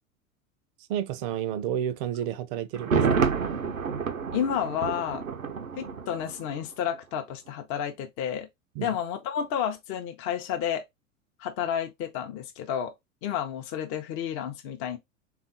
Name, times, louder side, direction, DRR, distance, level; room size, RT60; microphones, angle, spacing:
voice 1, 0.9-3.2 8.8-9.0, right 10 dB, 40° right, 0.5 m, -31 dB
Thunder, 2.7-6.7 6.9-7.0, right 6 dB, 85° right, 0.6 m, -28 dB
voice 2, 4.3-5.2 5.8-8.5 8.8-10.8 11.4-12.9 13.2-15.0, left 9 dB, 35° left, 0.6 m, -31 dB
3.5 x 2.4 x 3.8 m
figure-of-eight pair, 80°, 39 cm